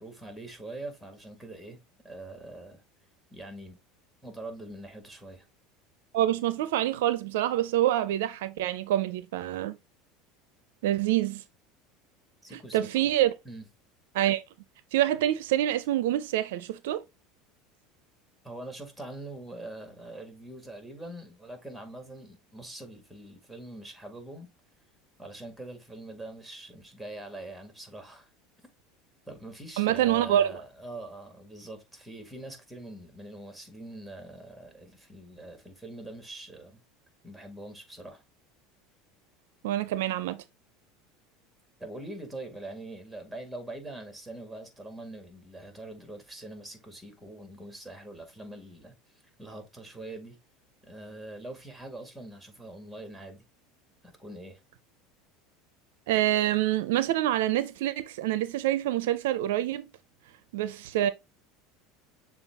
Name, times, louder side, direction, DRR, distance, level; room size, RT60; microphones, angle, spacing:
voice 1, 0.0-1.8 2.0-2.8 3.3-3.8 4.2-5.5 12.4-13.1 13.5-13.7 18.4-24.5 25.2-28.3 29.3-36.8 37.2-38.2 41.8-50.4 50.8-53.5 54.0-54.6, right 2 dB, ahead, 1.8 m, -43 dB
voice 2, 6.1-9.8 10.8-11.4 12.5-13.3 14.1-14.4 14.9-17.0 29.8-30.5 39.6-40.4 56.1-59.9 60.5-61.1, right 13 dB, 80° right, 0.4 m, -26 dB
6.8 x 2.3 x 3.4 m
hypercardioid pair, 90°, 0 cm